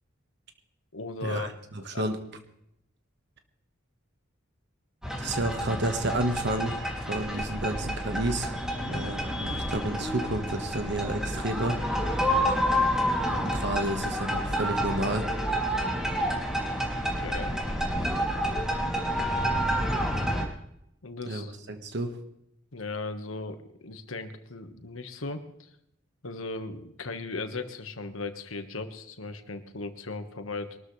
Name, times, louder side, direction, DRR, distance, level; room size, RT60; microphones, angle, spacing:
voice 1, 0.9-1.5 1.9-2.1 8.7-9.0 17.0-17.5 21.0-21.5 22.7-25.7 26.2-30.8, left 3 dB, 85° left, 8 dB, 1.5 m, -37 dB
voice 2, 1.9-2.2 5.2-8.5 8.9-11.8 13.3-15.3 21.3-22.2, right 1 dB, 60° right, 6 dB, 1.5 m, -31 dB
sound 1, 5.0-20.4, equal, 5° right, 2.8 m, -29 dB
23.0 x 13.0 x 3.3 m, 0.77 s
head